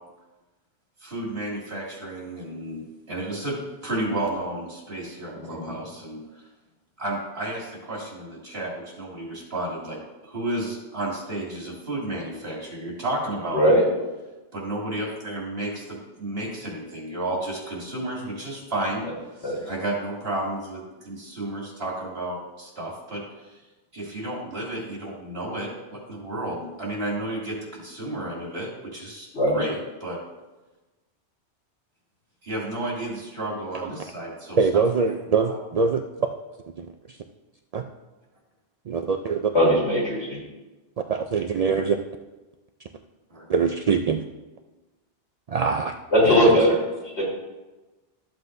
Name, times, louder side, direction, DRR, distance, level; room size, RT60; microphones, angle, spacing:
voice 1, 1.0-3.6 3.8-6.5 7.0-10.0 10.2-13.7 14.5-19.0 19.3-23.6 23.9-30.2 32.4-34.8 35.5-35.6 43.3-43.5, right 1 dB, 60° right, -4 dB, 2.8 m, -32 dB
voice 2, 5.3-5.7 13.5-13.8 19.4-19.6 29.3-29.6 39.5-40.4 46.1-46.8 47.2-47.3, equal, 70° left, -6 dB, 4.1 m, -19 dB
voice 3, 34.6-36.0 36.8-37.2 37.7-37.8 38.9-39.5 41.1-42.0 43.5-44.2 45.5-45.9 46.2-46.5, right 5 dB, 75° right, 5 dB, 0.3 m, -23 dB
13.5 x 7.9 x 2.6 m, 1.1 s
omnidirectional pair, 1.2 m